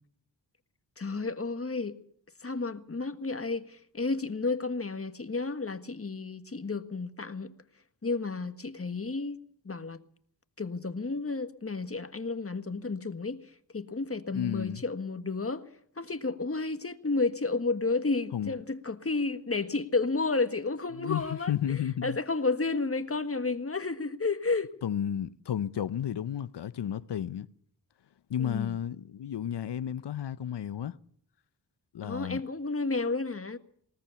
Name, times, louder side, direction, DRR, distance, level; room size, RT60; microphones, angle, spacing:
voice 1, 1.0-2.0 2.4-7.5 8.0-9.4 9.6-10.0 10.6-15.6 16.0-24.7 28.4-28.8 32.0-33.6, left 3 dB, 30° left, 1.6 m, -32 dB
voice 2, 14.3-14.8 18.3-18.5 20.9-22.2 24.8-27.5 28.3-31.0 31.9-32.4, left 9 dB, 65° left, 0.9 m, -32 dB
20.5 x 18.5 x 7.0 m
cardioid pair, 40°, 44 cm